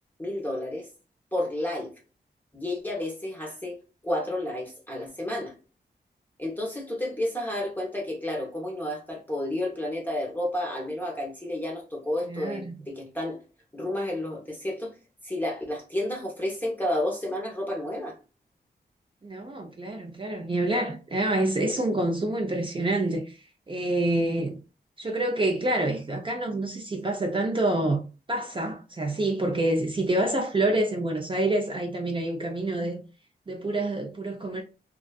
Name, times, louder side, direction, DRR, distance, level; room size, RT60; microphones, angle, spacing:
voice 1, 0.2-0.9 1.3-1.9 2.5-3.8 4.0-5.5 6.4-13.4 13.7-14.9 15.2-18.2, left 1 dB, 10° left, 0.7 m, -31 dB
voice 2, 12.3-12.8 19.2-23.4 23.7-24.5 25.0-28.0 28.3-33.0 33.5-34.6, right 1 dB, 30° right, 0.4 m, -27 dB
2.5 x 2.3 x 2.2 m
wide cardioid pair, 90°, 17 cm